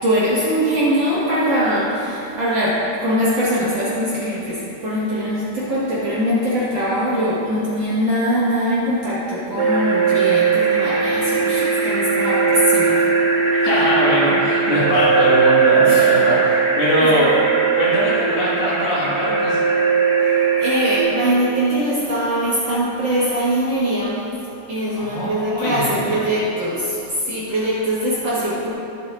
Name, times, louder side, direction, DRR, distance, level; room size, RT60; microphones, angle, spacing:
voice 1, 0.0-13.0 13.6-13.7 15.9-16.1 17.0-17.1 20.6-24.2 24.7-27.0 27.2-28.7, equal, 50° right, -9 dB, 2.3 m, -22 dB
sound 1, 9.6-21.0, right 5 dB, 80° right, 3.8 m, -18 dB
voice 2, 13.6-17.3 17.7-19.6 24.9-26.1, left 1 dB, 70° left, -8 dB, 4.0 m, -21 dB
19.5 x 7.2 x 2.6 m, 2.8 s
omnidirectional pair, 4.6 m